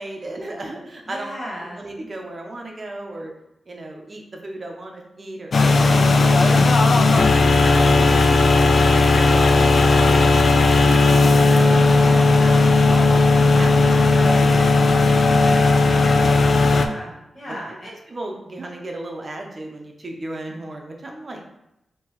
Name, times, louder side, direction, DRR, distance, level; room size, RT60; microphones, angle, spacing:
voice 1, 0.0-1.3 1.6-3.3 3.7-10.4 11.0-13.1 13.5-16.6 17.5-17.6 17.8-21.4, right 1 dB, 45° right, 1 dB, 0.8 m, -36 dB
voice 2, 1.1-1.8 9.9-10.3 10.8-11.8 16.7-17.9, equal, 35° left, -6 dB, 1.2 m, -35 dB
sound 1, 5.5-16.9, left 3 dB, 60° left, 0.3 m, -15 dB
3.6 x 3.0 x 3.0 m, 0.85 s
cardioid pair, 55°, 0 cm